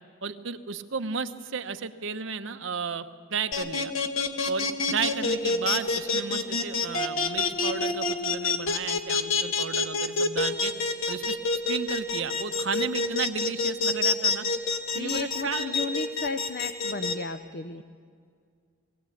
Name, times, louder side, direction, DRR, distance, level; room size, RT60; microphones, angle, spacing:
voice 1, 0.2-3.0 3.3-3.9 4.5-10.7 11.1-11.4 11.7-14.5 14.9-15.7, right 5 dB, 65° right, 8 dB, 0.9 m, -33 dB
sound 1, 3.5-17.1, left 3 dB, 80° left, 1.5 m, -26 dB
voice 2, 14.9-17.8, left 4 dB, 50° left, 9 dB, 0.6 m, -34 dB
20.5 x 17.0 x 8.4 m, 2.1 s
head